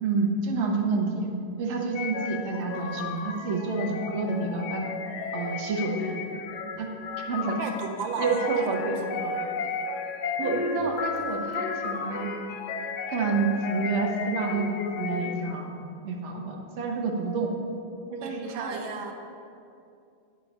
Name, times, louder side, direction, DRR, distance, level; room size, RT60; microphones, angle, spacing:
voice 1, 0.0-1.3 1.6-4.8 5.3-6.2 6.8-6.9 7.3-7.6 8.2-9.4 10.4-12.3 13.1-15.8 16.0-17.5 18.2-18.8, right 4 dB, 50° right, 0 dB, 0.9 m, -29 dB
sound 1, 1.9-15.6, left 5 dB, 75° left, 0.9 m, -33 dB
voice 2, 7.6-8.8 17.9-19.1, right 5 dB, 75° right, 3 dB, 1.4 m, -35 dB
10.0 x 4.5 x 5.3 m, 2.5 s
omnidirectional pair, 2.3 m